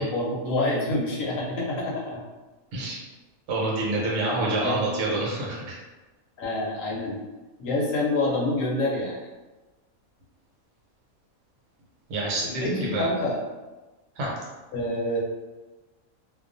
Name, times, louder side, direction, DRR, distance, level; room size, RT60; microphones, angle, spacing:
voice 1, 0.0-2.2 4.3-4.9 6.4-7.2 7.6-9.2 12.6-13.4 14.7-15.2, left 2 dB, 75° left, -3 dB, 1.0 m, -27 dB
voice 2, 3.5-5.8 12.1-13.1 14.2-14.3, right 2 dB, 65° right, -4 dB, 1.0 m, -27 dB
2.4 x 2.3 x 2.5 m, 1.2 s
omnidirectional pair, 1.4 m